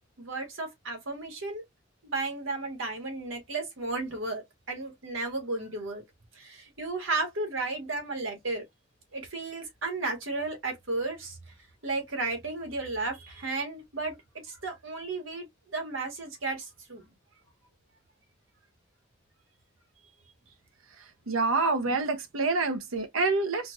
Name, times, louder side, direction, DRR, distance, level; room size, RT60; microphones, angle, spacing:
voice 1, 0.2-1.6 2.0-6.0 6.3-8.6 9.1-11.4 11.8-14.2 14.4-17.1, right 3 dB, 75° right, 1.6 m, -34 dB
voice 2, 21.3-23.7, right 3 dB, 90° right, 0.9 m, -27 dB
4.4 x 2.5 x 2.5 m
head